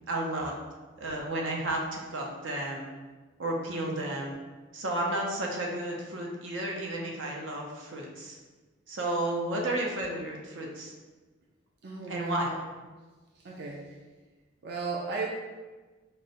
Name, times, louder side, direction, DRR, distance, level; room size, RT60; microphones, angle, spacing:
voice 1, 0.1-0.5 1.0-2.9 3.4-4.3 4.7-8.4 8.9-10.9 12.1-12.5, right 1 dB, 90° right, -1 dB, 0.7 m, -32 dB
voice 2, 3.7-4.1 11.8-12.6 13.4-13.9 14.6-15.3, right 4 dB, 55° right, -1 dB, 0.4 m, -36 dB
5.3 x 2.1 x 2.6 m, 1.3 s
head